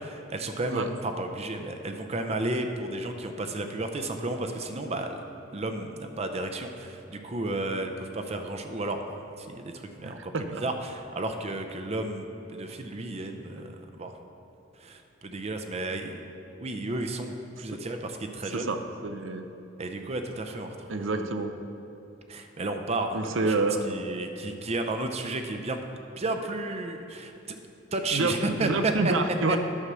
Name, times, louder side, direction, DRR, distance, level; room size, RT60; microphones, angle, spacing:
voice 1, 0.0-5.2 5.5-14.2 14.8-16.2 16.6-18.7 19.8-21.3 22.3-25.8 26.2-27.6 27.9-29.1, right 2 dB, 35° right, 5 dB, 0.6 m, -33 dB
voice 2, 10.0-10.6 18.5-19.5 20.9-21.5 23.1-24.0 28.1-29.6, right 3 dB, 75° right, 7 dB, 0.7 m, -28 dB
9.9 x 5.7 x 6.2 m, 2.9 s
head